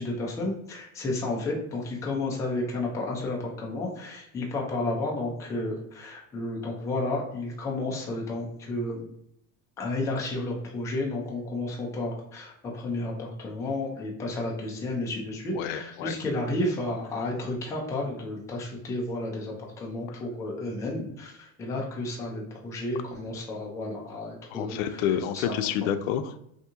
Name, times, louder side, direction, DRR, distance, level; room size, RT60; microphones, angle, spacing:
voice 1, 0.0-9.0 9.8-25.5, left 2 dB, 10° left, -2 dB, 0.3 m, -32 dB
voice 2, 15.5-16.2 20.1-20.2 24.5-26.4, left 9 dB, 90° left, 10 dB, 0.5 m, -29 dB
2.8 x 2.7 x 3.5 m, 0.78 s
cardioid pair, 160°, 39 cm